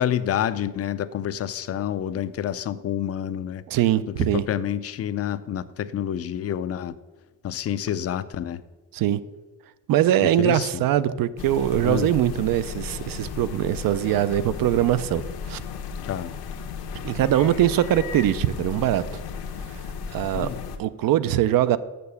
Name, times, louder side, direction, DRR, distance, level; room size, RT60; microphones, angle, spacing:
voice 1, 0.0-3.6 4.1-6.9 7.4-8.6 10.4-10.8 11.8-12.1 16.1-16.3 20.3-20.6, left 10 dB, 40° left, 0.4 m, -28 dB
voice 2, 3.7-4.4 8.9-9.2 9.9-15.2 15.5-15.6 17.0-19.0 19.7-19.8 20.1-20.5 20.8-21.8, right 12 dB, 65° right, 0.5 m, -22 dB
sound 1, 11.4-20.8, left 6 dB, 80° left, 1.1 m, -35 dB
6.8 x 6.6 x 6.9 m
cardioid pair, 135°, 37 cm